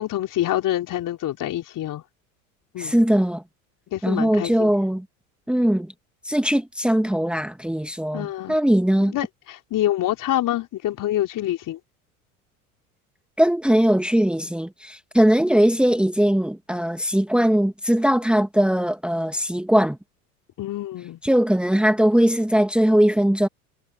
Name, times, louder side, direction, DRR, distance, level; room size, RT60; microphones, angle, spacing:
voice 1, 0.0-2.0 2.7-2.9 3.9-4.7 8.1-8.6 9.0-11.8 20.6-21.2, left 13 dB, 45° left, 4.3 m, -26 dB
voice 2, 2.8-3.4 4.0-5.1 5.5-5.9 6.2-9.2 13.4-20.0 21.2-23.5, equal, ahead, 1.9 m, -20 dB
hypercardioid pair, 75°, 44 cm